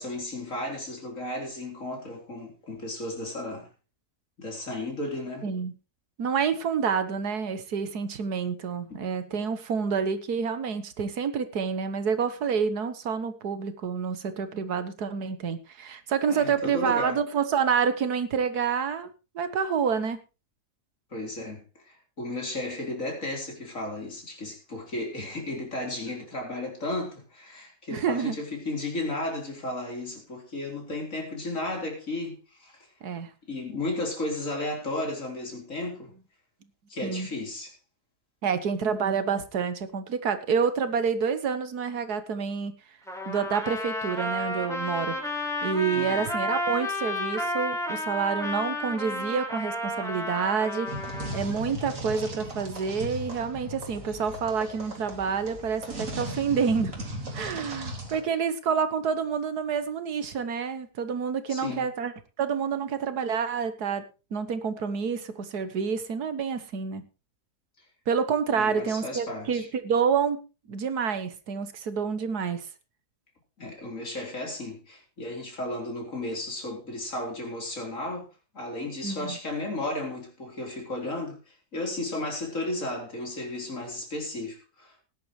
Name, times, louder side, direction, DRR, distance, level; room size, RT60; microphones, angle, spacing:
voice 1, 0.0-3.7 4.4-5.5 16.3-17.2 21.1-32.9 33.5-36.1 36.9-37.7 45.9-46.3 61.5-61.9 68.5-69.7 73.6-78.3 78.5-85.0, left 2 dB, 55° left, 4.4 m, -34 dB
voice 2, 5.4-5.7 6.2-19.1 19.4-20.2 27.9-28.4 33.0-33.3 37.0-37.3 38.4-42.7 43.3-45.2 45.6-50.9 51.3-57.0 57.3-62.1 62.4-64.0 64.3-67.1 68.1-70.4 70.7-72.7 79.0-79.4, right 6 dB, 85° right, 1.8 m, -28 dB
Trumpet, 43.1-51.4, left 1 dB, ahead, 4.1 m, -31 dB
sound 1, 50.9-58.2, right 1 dB, 55° right, 3.0 m, -37 dB
19.0 x 10.5 x 3.2 m
omnidirectional pair, 1.6 m